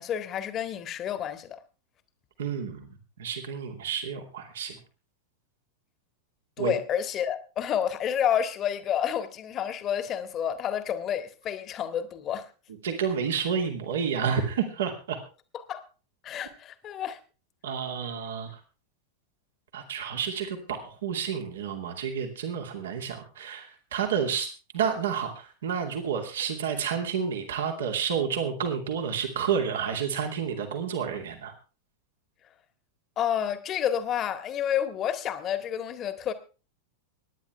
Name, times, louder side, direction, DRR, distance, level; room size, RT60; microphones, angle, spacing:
voice 1, 0.0-1.6 6.6-12.5 15.7-15.8 16.2-17.2 33.2-36.3, left 9 dB, 30° left, 1.8 m, -29 dB
voice 2, 2.4-2.9 3.2-4.8 6.6-6.7 12.8-15.2 17.6-18.6 19.7-31.5, right 7 dB, 60° right, 2.5 m, -30 dB
25.0 x 10.5 x 3.4 m
figure-of-eight pair, 90°, 0 cm